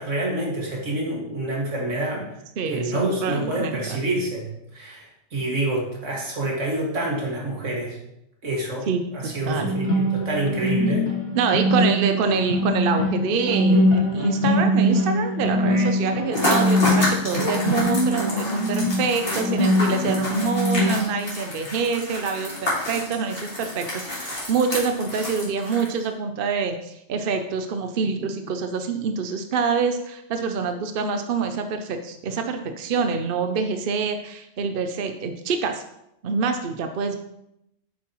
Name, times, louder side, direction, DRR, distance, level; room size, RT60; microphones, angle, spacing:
voice 1, 0.0-2.3 2.7-8.0 8.4-11.1 15.7-15.9, right 1 dB, 75° right, -2 dB, 2.4 m, -27 dB
voice 2, 2.6-4.0 8.9-9.7 10.8-10.9 11.3-35.8 36.2-37.2, right 5 dB, 55° right, 6 dB, 0.7 m, -26 dB
sound 1, 9.6-21.0, equal, 65° left, 2.5 m, -22 dB
sound 2, 16.3-26.1, left 1 dB, 50° left, 2.7 m, -29 dB
8.7 x 7.2 x 3.0 m, 0.81 s
omnidirectional pair, 1.3 m